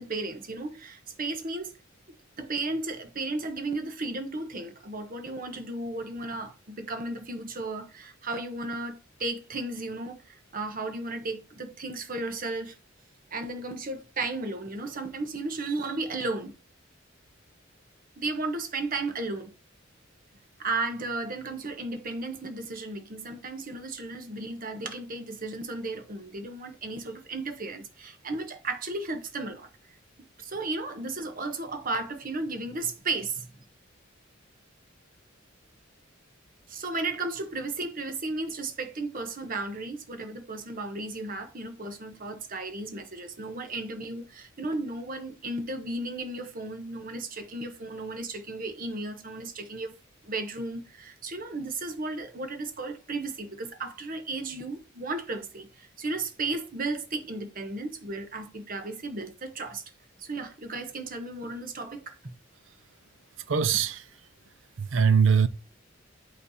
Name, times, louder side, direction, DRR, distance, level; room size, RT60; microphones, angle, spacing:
voice 1, 0.0-1.8 2.4-12.7 13.3-16.5 18.2-19.5 20.6-29.9 30.4-33.5 36.7-50.0 50.2-59.8 60.2-62.3, right 2 dB, 45° right, 1.1 m, -34 dB
voice 2, 63.5-64.0 64.8-65.5, right 6 dB, 70° right, 0.6 m, -22 dB
8.4 x 3.3 x 4.1 m
head